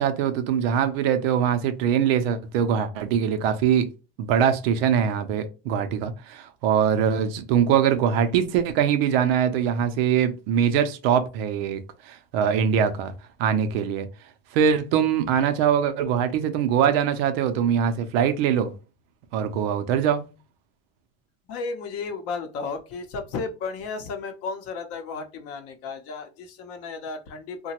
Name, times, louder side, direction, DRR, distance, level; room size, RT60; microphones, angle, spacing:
voice 1, 0.0-3.9 4.2-11.8 12.1-13.1 13.4-14.1 14.5-18.7 19.3-20.2, right 8 dB, 65° right, 0.6 m, -22 dB
voice 2, 21.5-27.7, left 4 dB, 45° left, 0.7 m, -33 dB
2.9 x 2.2 x 2.9 m
supercardioid pair, 120°, 32 cm